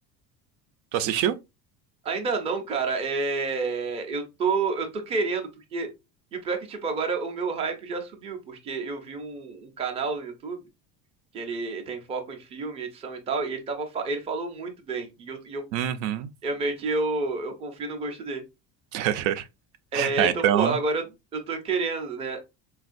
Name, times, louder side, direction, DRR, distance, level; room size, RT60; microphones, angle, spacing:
voice 1, 0.9-1.4 15.7-16.3 18.9-19.4 19.9-20.8, right 11 dB, 85° right, 0.6 m, -25 dB
voice 2, 2.0-5.9 6.3-10.6 11.3-15.7 16.4-18.4 19.9-21.1 21.3-22.4, right 4 dB, 15° right, 0.4 m, -29 dB
4.3 x 2.3 x 2.5 m
cardioid pair, 170°, 38 cm